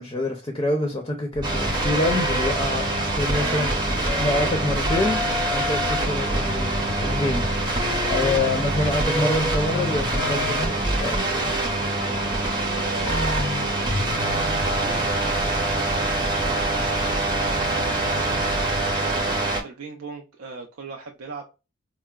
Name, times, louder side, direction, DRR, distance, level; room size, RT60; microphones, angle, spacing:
voice 1, 0.0-3.9 4.2-7.5 8.1-11.5, left 2 dB, 20° left, 0.4 m, -27 dB
sound 1, 1.3-19.4, left 1 dB, 80° left, 0.6 m, -33 dB
sound 2, 1.4-19.6, right 1 dB, 20° right, 0.7 m, -25 dB
voice 2, 8.0-8.6 11.8-21.5, right 3 dB, 90° right, 0.5 m, -38 dB
4.5 x 2.0 x 2.3 m
head